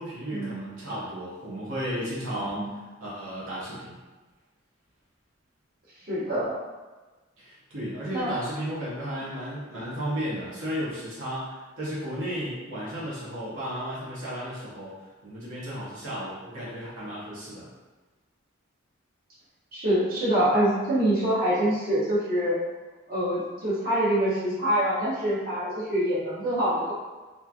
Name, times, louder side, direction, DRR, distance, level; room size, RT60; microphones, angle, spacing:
voice 1, 0.0-4.0 7.4-17.7, equal, 80° right, -8 dB, 0.9 m, -34 dB
voice 2, 6.1-6.5 8.1-8.3 19.7-22.6 23.1-26.9, right 1 dB, 50° right, -9 dB, 1.0 m, -25 dB
3.0 x 2.5 x 2.3 m, 1.3 s
head